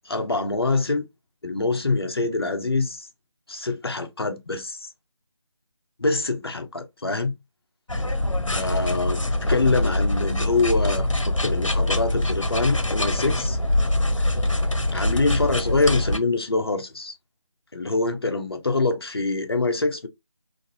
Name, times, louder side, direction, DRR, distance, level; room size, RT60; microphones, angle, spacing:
voice 1, 0.1-1.1 1.4-3.1 3.5-4.9 6.0-7.3 8.5-13.6 14.9-17.1 17.7-20.1, left 3 dB, 50° left, 0.8 m, -25 dB
sound 1, 7.9-16.2, left 1 dB, 75° left, 0.8 m, -24 dB
3.9 x 2.6 x 2.7 m
figure-of-eight pair, 160°, 16 cm